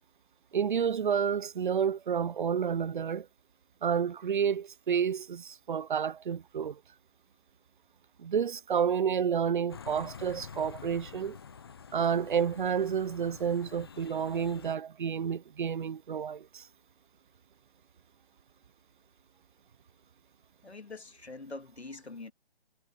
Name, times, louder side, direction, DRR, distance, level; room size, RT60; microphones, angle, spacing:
voice 1, 0.5-3.3 3.8-6.8 8.2-11.4 11.9-16.6, right 7 dB, 50° right, 0.8 m, -30 dB
sound 1, 9.7-14.8, left 7 dB, 25° left, 0.5 m, -48 dB
voice 2, 20.6-22.3, left 3 dB, 85° left, 2.7 m, -44 dB
figure-of-eight pair, 145°, 32 cm